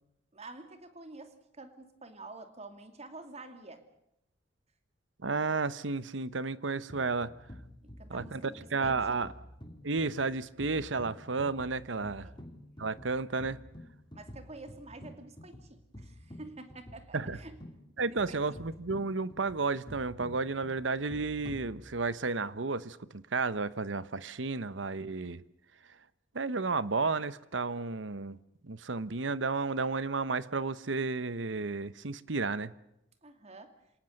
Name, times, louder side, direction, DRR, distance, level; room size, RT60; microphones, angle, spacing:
voice 1, 0.3-3.8 7.8-9.3 12.2-12.3 14.1-17.6 18.0-18.6 33.2-33.7, right 2 dB, 35° right, 8 dB, 2.6 m, -48 dB
voice 2, 5.2-7.3 8.1-9.3 9.8-12.3 12.8-13.6 17.1-17.4 18.0-25.4 26.3-28.4 28.6-32.7, right 4 dB, 80° right, 16 dB, 1.0 m, -32 dB
sound 1, 6.9-22.3, equal, 25° left, 2.9 m, -50 dB
27.5 x 18.5 x 6.6 m, 0.83 s
head